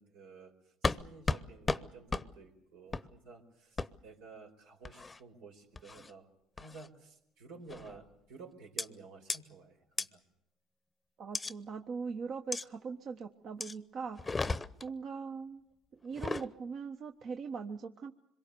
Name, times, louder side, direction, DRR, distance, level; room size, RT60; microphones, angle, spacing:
voice 1, 0.0-6.3 6.6-10.2, right 4 dB, 90° right, 1 dB, 4.6 m, -53 dB
sound 1, 0.8-1.0 1.3-1.4 1.7-1.8 2.1-2.3 2.9-3.1 3.8-3.9 4.8-5.2 5.8-6.1 6.6-6.9 7.7-8.0 8.8-8.9 9.3-9.4 10.0-10.1 11.3-11.5 12.5-12.7 13.6-13.8 14.2-14.9 16.1-16.5, left 3 dB, 20° left, 0.8 m, -34 dB
voice 2, 11.2-14.5 14.8-15.6 16.0-18.1, right 5 dB, 55° right, 5 dB, 1.2 m, -41 dB
25.5 x 22.5 x 6.9 m, 0.76 s
supercardioid pair, 85°, 0 cm